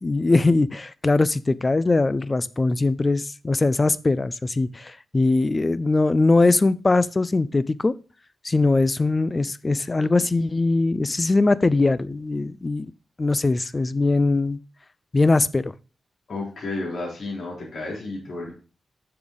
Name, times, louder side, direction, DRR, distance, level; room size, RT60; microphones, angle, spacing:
voice 1, 0.0-7.9 8.4-12.9 13.2-14.6 15.1-15.7, left 3 dB, 25° left, 0.4 m, -21 dB
voice 2, 16.3-18.5, left 2 dB, 55° left, 3.7 m, -32 dB
7.0 x 6.8 x 3.9 m
wide cardioid pair, 130°, 0 cm